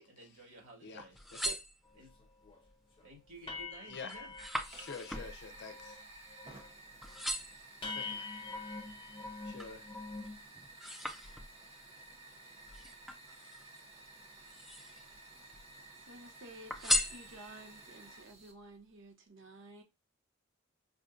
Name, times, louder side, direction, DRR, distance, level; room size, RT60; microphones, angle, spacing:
voice 1, 0.0-1.2 2.0-2.1 3.0-4.3, right 2 dB, 75° right, 1.9 m, -53 dB
sound 1, 1.1-2.3 2.8-3.3 3.6-6.7 7.0-7.7 8.3-9.8 10.2-11.8 12.7-13.8 14.4-15.2 15.5-16.2 16.7-17.8 18.3-18.4, left 1 dB, ahead, 0.4 m, -39 dB
sound 2, 1.9-2.0 2.4-2.7 3.0-3.1 3.5-5.3 5.6-6.0 6.3-6.7 7.2-7.3 7.8-10.4, left 3 dB, 25° left, 0.8 m, -45 dB
Fire, 4.6-18.5, right 2 dB, 30° right, 0.9 m, -54 dB
voice 2, 4.7-6.0 8.0-8.3 9.4-9.8, left 5 dB, 55° left, 0.6 m, -46 dB
voice 3, 16.0-19.8, right 1 dB, 60° right, 0.9 m, -53 dB
5.0 x 2.2 x 2.5 m
head